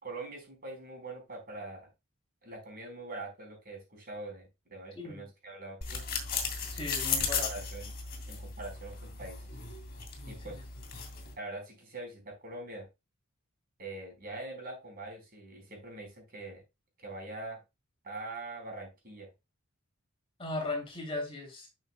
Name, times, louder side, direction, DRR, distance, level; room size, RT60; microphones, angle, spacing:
voice 1, 0.0-1.9 2.4-6.0 7.2-7.9 8.3-9.5 10.3-10.6 11.4-12.9 13.8-16.6 17.0-17.6 18.0-19.3, right 2 dB, 40° right, 4.4 m, -43 dB
sound 1, 5.8-11.3, left 6 dB, 45° left, 2.9 m, -36 dB
voice 2, 6.7-7.5 20.4-21.7, left 2 dB, 25° left, 2.9 m, -37 dB
12.0 x 6.4 x 2.2 m
head